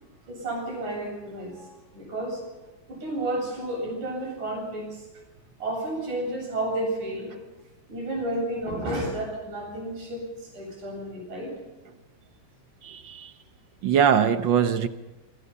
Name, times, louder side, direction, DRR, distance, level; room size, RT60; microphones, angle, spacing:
voice 1, 0.3-2.4 2.9-5.1 5.6-7.4 7.9-11.5, right 1 dB, 85° right, 0 dB, 9.4 m, -31 dB
voice 2, 12.8-13.3 13.8-14.9, right 8 dB, 70° right, 9 dB, 1.1 m, -22 dB
27.0 x 23.5 x 5.7 m, 1.1 s
omnidirectional pair, 3.4 m